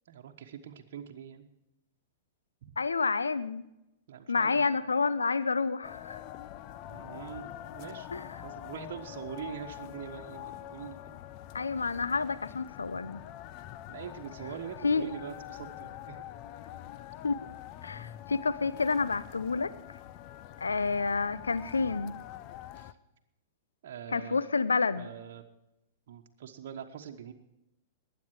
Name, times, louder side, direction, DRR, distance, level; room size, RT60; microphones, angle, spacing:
voice 1, 0.1-1.5 2.6-2.7 4.1-4.7 6.9-8.1 8.4-11.2 13.9-16.2 22.7-22.9 23.8-24.4 25.0-25.4 26.1-27.3, right 8 dB, 60° right, 2 dB, 1.2 m, -43 dB
voice 2, 2.8-3.6 4.3-6.2 8.1-8.3 11.5-13.2 14.8-15.1 17.2-17.5 17.8-19.7 20.6-22.2 24.1-25.1, left 4 dB, 85° left, 15 dB, 0.6 m, -29 dB
sound 1, 5.8-22.9, left 13 dB, 45° left, 0.7 m, -45 dB
20.5 x 9.2 x 4.7 m, 0.91 s
figure-of-eight pair, 105°, 0 cm